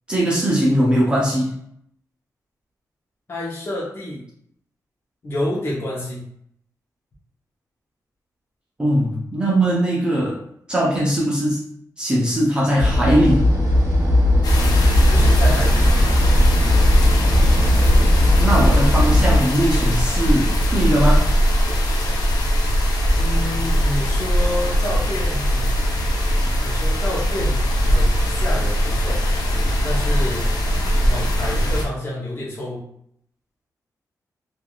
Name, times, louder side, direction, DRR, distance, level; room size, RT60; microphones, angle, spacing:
voice 1, 0.1-1.6 8.8-10.4 10.7-11.6 12.0-13.4 18.4-21.2, right 1 dB, 15° right, -5 dB, 0.5 m, -20 dB
voice 2, 3.3-4.2 5.2-6.3 15.1-15.8 23.2-25.7 26.6-29.3 29.8-30.5 31.0-32.8, left 1 dB, 40° left, -6 dB, 0.8 m, -29 dB
sound 1, 12.8-19.4, left 1 dB, 45° right, 0.8 m, -18 dB
sound 2, 14.4-31.8, equal, 80° left, 0.6 m, -19 dB
3.3 x 2.4 x 2.3 m, 0.70 s
wide cardioid pair, 155°, 6 cm